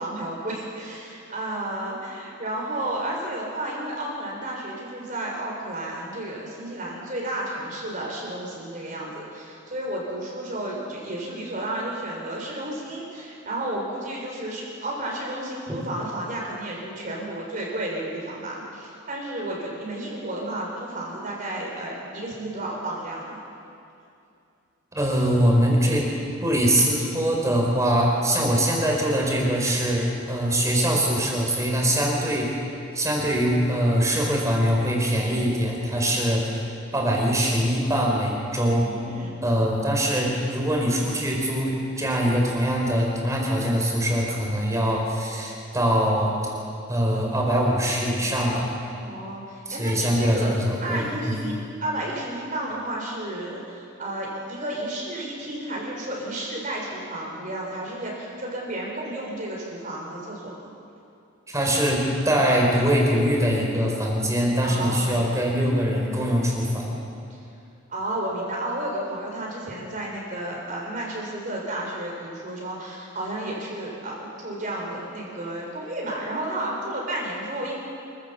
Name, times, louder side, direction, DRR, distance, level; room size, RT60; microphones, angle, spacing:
voice 1, 0.0-23.4 38.8-39.4 49.0-60.7 64.6-65.2 67.3-67.4 67.9-77.8, right 1 dB, 40° right, -2 dB, 4.1 m, -32 dB
voice 2, 24.9-26.1 26.4-32.6 32.9-36.6 36.9-38.9 39.4-46.3 46.9-48.7 49.7-51.4 61.5-66.9, equal, 15° right, -1 dB, 4.2 m, -23 dB
26.0 x 15.5 x 6.9 m, 2.6 s
head